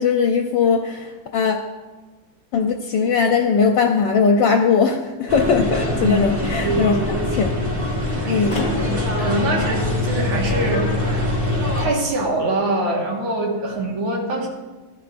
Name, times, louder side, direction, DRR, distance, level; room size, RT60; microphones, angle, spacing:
voice 1, 0.0-1.6 2.5-6.9 7.4-7.5 8.3-8.7, left 5 dB, 70° left, 3 dB, 1.3 m, -19 dB
sound 1, 5.3-11.8, left 1 dB, 10° right, 3.0 m, -23 dB
sound 2, 5.6-6.3 8.4-8.9 11.5-11.9, left 2 dB, 40° left, 1.3 m, -34 dB
voice 2, 6.6-7.3 8.0-11.3 11.8-14.5, right 1 dB, 80° right, -2 dB, 2.6 m, -24 dB
15.0 x 11.5 x 2.6 m, 1.3 s
omnidirectional pair, 2.2 m